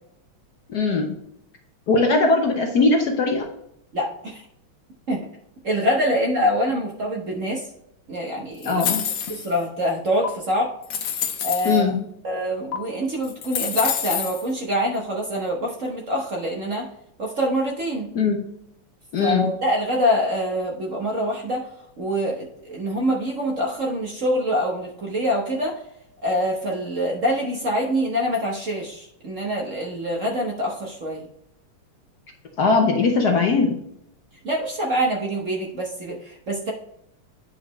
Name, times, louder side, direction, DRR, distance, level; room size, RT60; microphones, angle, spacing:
voice 1, 0.7-1.1 1.9-3.5 8.6-9.0 11.6-12.0 18.1-18.4 19.1-19.5 32.6-33.7, left 3 dB, 60° left, 2 dB, 1.2 m, -20 dB
voice 2, 3.9-4.4 5.1-5.2 5.6-7.7 8.1-8.8 9.3-10.7 11.4-11.8 12.2-16.9 17.2-18.1 19.2-21.7 22.0-25.8 26.2-31.3 34.4-36.7, equal, 45° right, -1 dB, 1.1 m, -25 dB
sound 1, 8.6-9.6 10.2-10.3 10.8-11.8 12.7-12.8 13.2-14.5, left 8 dB, 80° left, 1.8 m, -27 dB
9.1 x 5.1 x 3.1 m, 0.76 s
omnidirectional pair, 2.4 m